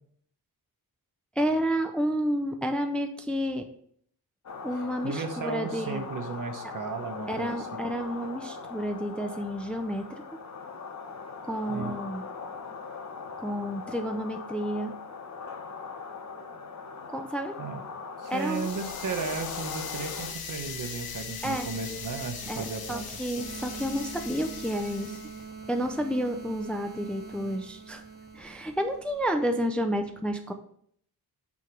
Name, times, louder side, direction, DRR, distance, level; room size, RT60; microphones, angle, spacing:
voice 1, 1.4-3.7 4.6-6.1 7.3-10.2 11.4-12.2 13.4-14.9 17.1-17.5 18.3-18.7 21.4-21.7 22.5-25.2 25.7-28.0 28.3-30.5, equal, 5° left, 6 dB, 0.5 m, -30 dB
sound 1, 4.5-20.3, left 5 dB, 45° left, 1.0 m, -40 dB
voice 2, 4.7-7.7 11.7-11.9 17.6-17.8 18.2-23.1, right 4 dB, 55° right, 6 dB, 1.0 m, -35 dB
sound 2, 18.3-25.5, left 6 dB, 70° left, 1.0 m, -40 dB
sound 3, 21.4-29.3, right 5 dB, 25° right, 1.5 m, -44 dB
6.0 x 5.7 x 4.5 m, 0.64 s
wide cardioid pair, 135°, 38 cm